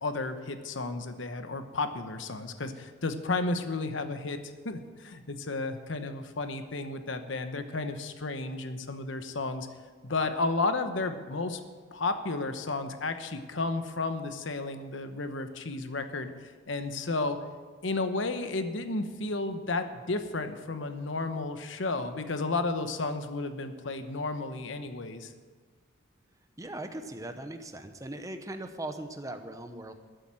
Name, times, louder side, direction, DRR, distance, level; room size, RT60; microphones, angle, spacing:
voice 1, 0.0-9.7 10.0-11.6 11.9-17.4 17.8-25.3, left 3 dB, 70° left, 8 dB, 1.0 m, -32 dB
voice 2, 26.6-29.9, right 1 dB, 15° right, 7 dB, 0.8 m, -39 dB
12.5 x 7.9 x 7.6 m, 1.5 s
head